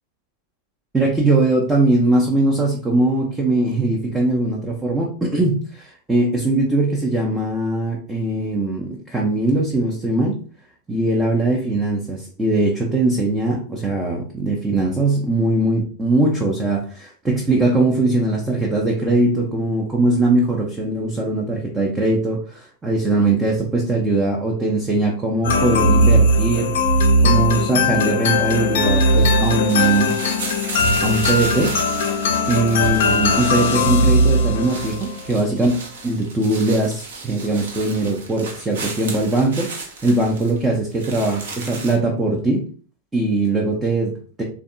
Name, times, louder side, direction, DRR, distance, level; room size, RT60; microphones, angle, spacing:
voice 1, 0.9-10.4 10.9-26.7 27.2-30.1 31.0-31.7 32.5-35.8 36.0-39.7 40.0-42.6 43.1-44.4, right 2 dB, 10° right, -2 dB, 0.6 m, -20 dB
sound 1, 25.4-35.1, left 1 dB, 60° left, 0.5 m, -18 dB
sound 2, 29.1-41.9, right 3 dB, 60° right, 0.7 m, -34 dB
3.4 x 2.3 x 2.5 m, 0.40 s
figure-of-eight pair, 90°, 0 cm